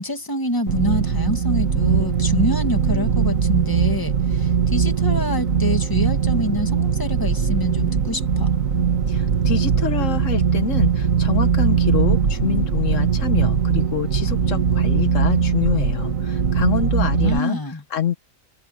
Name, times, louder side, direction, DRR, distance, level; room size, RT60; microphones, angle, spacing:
voice 1, 0.0-8.5 16.9-17.8, left 1 dB, 15° left, 2.4 m, -26 dB
sound 1, 0.7-17.4, right 6 dB, 90° right, 2.1 m, -20 dB
voice 2, 9.1-17.6 17.9-18.2, left 7 dB, 75° left, 1.4 m, -26 dB
omnidirectional pair, 1.4 m